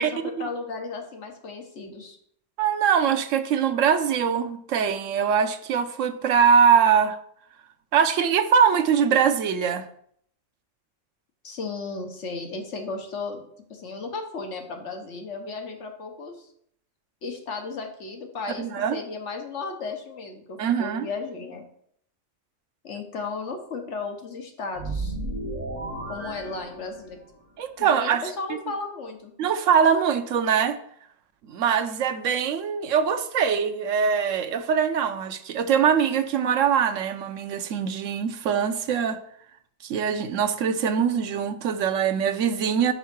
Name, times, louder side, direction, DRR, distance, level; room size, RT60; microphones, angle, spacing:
voice 1, 0.0-2.2 11.4-16.5 17.2-18.6 18.9-21.6 22.8-25.2 26.1-27.2 27.8-29.3, left 4 dB, 70° left, 4 dB, 1.4 m, -35 dB
voice 2, 2.6-7.2 7.9-9.8 18.6-19.0 20.6-21.1 27.6-28.2 29.4-30.8 31.5-39.2 39.8-42.9, right 7 dB, 80° right, 8 dB, 1.1 m, -22 dB
sound 1, 24.7-27.3, right 2 dB, 5° right, 3.6 m, -33 dB
5.5 x 5.5 x 6.0 m, 0.66 s
omnidirectional pair, 1.3 m